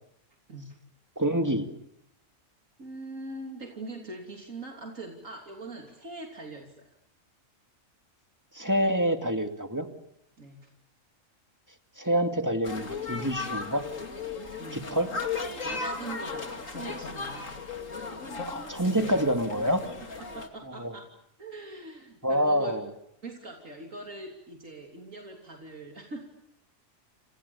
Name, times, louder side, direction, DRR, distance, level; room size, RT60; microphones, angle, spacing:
voice 1, 1.2-1.7 8.5-9.9 12.0-13.9 14.7-15.1 18.5-19.8 20.6-20.9 22.2-22.8, equal, 15° right, 6 dB, 2.3 m, -27 dB
voice 2, 2.8-6.7 10.4-10.7 14.6-14.9 15.6-17.6 20.2-21.1 21.4-22.8 23.2-26.3, right 2 dB, 75° right, 1 dB, 3.6 m, -42 dB
sound 1, 12.6-20.5, left 4 dB, 75° left, 2.9 m, -36 dB
29.5 x 28.0 x 7.1 m, 0.76 s
omnidirectional pair, 1.4 m